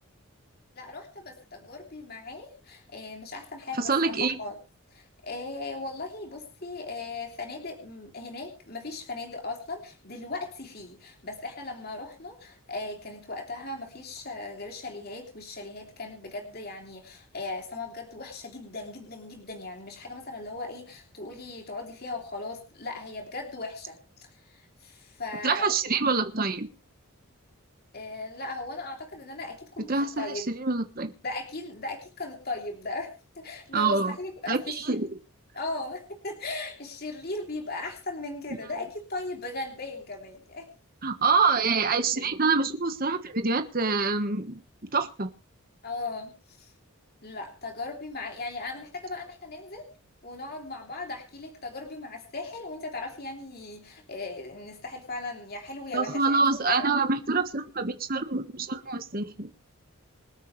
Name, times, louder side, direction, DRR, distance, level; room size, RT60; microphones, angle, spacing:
voice 1, 0.7-4.6 4.9-25.7 27.9-30.5 31.2-35.0 35.5-40.7 45.8-46.7 47.2-49.9 50.2-56.9, left 2 dB, 45° left, 2 dB, 3.2 m, -38 dB
voice 2, 3.8-4.4 25.4-26.7 29.9-31.1 33.7-34.1 34.5-34.6 34.9-35.1 41.0-44.6 44.9-45.3 55.9-59.5, right 4 dB, 40° right, 7 dB, 1.4 m, -26 dB
26.5 x 9.2 x 3.3 m, 0.34 s
head